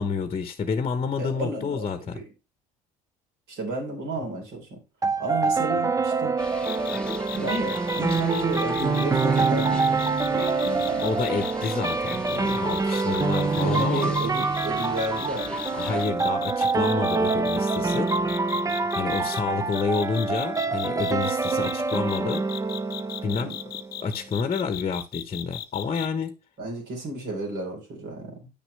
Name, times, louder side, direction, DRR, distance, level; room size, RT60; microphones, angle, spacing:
voice 1, 0.0-2.2 11.0-14.1 15.7-18.1 18.9-22.5 23.2-23.6 24.0-26.3, left 5 dB, 30° left, 1.0 m, -29 dB
voice 2, 1.2-2.3 3.5-4.8 5.2-6.4 7.3-10.0 10.3-11.1 13.6-15.6 23.4-23.6 26.6-28.5, right 2 dB, 65° right, 3.9 m, -32 dB
sound 1, 5.0-24.0, right 4 dB, 20° right, 0.6 m, -26 dB
sound 2, 6.4-16.0, left 2 dB, 5° left, 1.2 m, -40 dB
sound 3, 6.6-19.4 19.7-26.1, left 12 dB, 55° left, 0.7 m, -37 dB
8.6 x 6.0 x 3.3 m
supercardioid pair, 75°, 19 cm